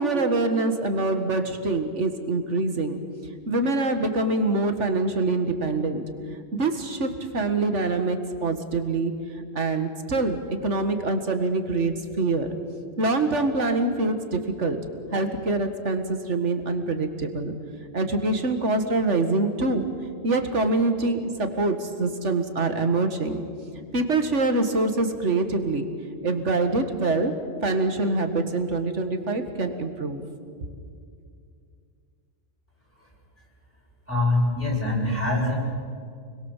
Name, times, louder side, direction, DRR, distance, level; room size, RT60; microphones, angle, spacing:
voice 1, 0.0-3.0 3.5-6.0 6.5-9.1 9.5-12.6 13.0-14.8 15.1-17.5 17.9-19.9 20.2-23.4 23.9-25.9 26.2-27.3 27.6-30.2, right 2 dB, 70° right, 7 dB, 2.2 m, -25 dB
voice 2, 34.1-35.6, left 2 dB, 10° left, -4 dB, 7.1 m, -23 dB
29.0 x 22.0 x 7.4 m, 2.3 s
omnidirectional pair, 1.3 m